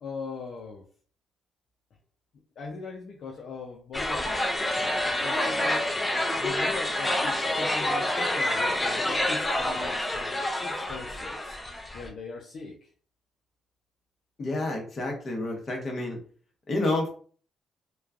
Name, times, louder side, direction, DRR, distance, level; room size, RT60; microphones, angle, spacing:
voice 1, 0.0-0.8 2.6-5.9 6.4-11.6 11.9-12.9, left 4 dB, 60° left, -1 dB, 0.5 m, -40 dB
sound 1, 3.9-12.1, left 1 dB, 15° left, 0.6 m, -28 dB
voice 2, 14.4-16.2 16.7-17.1, left 2 dB, 40° left, 0 dB, 1.1 m, -29 dB
3.0 x 2.3 x 2.4 m, 0.44 s
cardioid pair, 90°, 0 cm